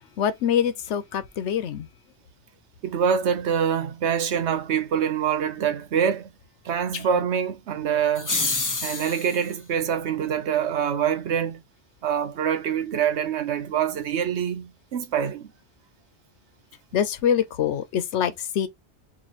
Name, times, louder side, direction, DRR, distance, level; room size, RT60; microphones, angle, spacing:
voice 1, 0.2-1.9 6.9-7.2 16.9-18.7, left 8 dB, 85° left, 1.0 m, -25 dB
voice 2, 2.8-6.3 6.6-8.3 8.8-11.6 12.0-15.5, right 8 dB, 80° right, 1.0 m, -25 dB
sound 1, 8.1-9.5, left 3 dB, 25° left, 0.4 m, -27 dB
3.0 x 2.6 x 4.1 m
omnidirectional pair, 1.1 m